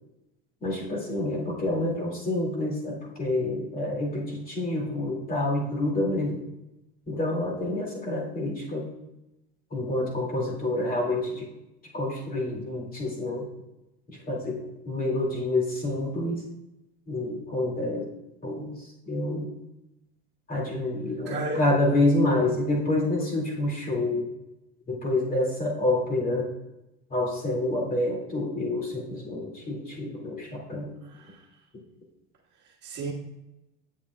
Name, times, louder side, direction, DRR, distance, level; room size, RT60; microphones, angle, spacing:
voice 1, 0.6-6.4 7.1-8.9 9.7-11.5 11.9-13.5 14.3-14.6 14.8-16.4 17.1-18.1 18.4-19.5 20.5-24.3 24.9-26.5 27.1-30.9, left 2 dB, 30° left, -2 dB, 2.3 m, -28 dB
voice 2, 21.3-21.6 31.0-31.5 32.6-33.1, right 2 dB, 35° right, -5 dB, 1.6 m, -34 dB
8.2 x 7.0 x 2.3 m, 0.93 s
supercardioid pair, 110°, 31 cm